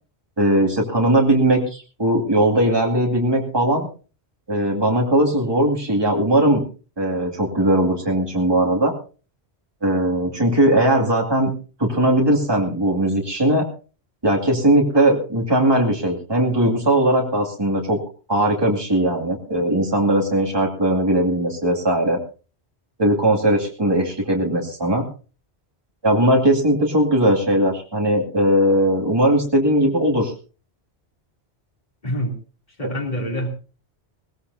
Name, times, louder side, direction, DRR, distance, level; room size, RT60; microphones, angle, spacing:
voice 1, 0.4-3.9 4.5-6.6 7.0-8.9 9.8-11.5 11.8-13.7 14.2-18.0 18.3-22.2 23.0-25.0 26.0-30.3, right 1 dB, 20° right, -1 dB, 2.4 m, -19 dB
voice 2, 32.0-32.3 32.8-33.5, equal, 40° left, 0 dB, 3.1 m, -25 dB
22.0 x 16.5 x 2.7 m, 0.36 s
omnidirectional pair, 1.1 m